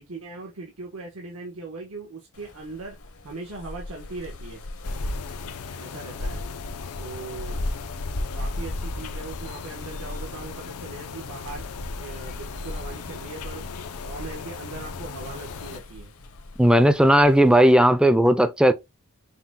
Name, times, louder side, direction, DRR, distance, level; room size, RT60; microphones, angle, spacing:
voice 1, 0.0-3.0 3.2-4.6 5.8-6.4 7.0-7.6 8.3-13.6 14.0-16.1, right 3 dB, 85° right, 1.2 m, -39 dB
sound 1, 2.3-17.7, left 1 dB, 70° left, 0.9 m, -37 dB
sound 2, 4.8-15.8, left 6 dB, 90° left, 0.6 m, -38 dB
voice 2, 16.6-18.7, equal, 5° right, 0.4 m, -16 dB
5.8 x 2.2 x 3.6 m
head